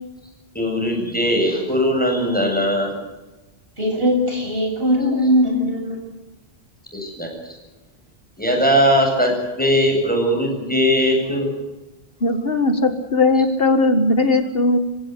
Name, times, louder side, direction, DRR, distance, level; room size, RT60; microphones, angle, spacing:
voice 1, 0.5-2.9 6.9-7.5 8.4-11.5, equal, 10° left, 1 dB, 7.8 m, -19 dB
voice 2, 3.8-6.0, equal, 65° right, 1 dB, 8.1 m, -20 dB
voice 3, 12.2-14.8, left 2 dB, 65° left, 8 dB, 1.8 m, -18 dB
26.5 x 17.0 x 8.3 m, 1.1 s
omnidirectional pair, 1.1 m